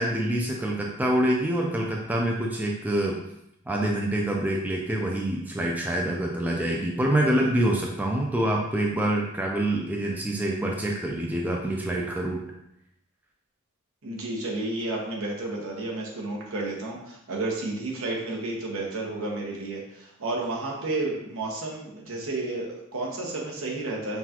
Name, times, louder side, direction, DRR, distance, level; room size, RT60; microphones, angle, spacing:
voice 1, 0.0-3.1 3.7-12.4, right 1 dB, 10° right, -2 dB, 0.3 m, -26 dB
voice 2, 14.0-24.2, right 2 dB, 65° right, -2 dB, 1.0 m, -31 dB
5.7 x 2.3 x 2.9 m, 0.81 s
head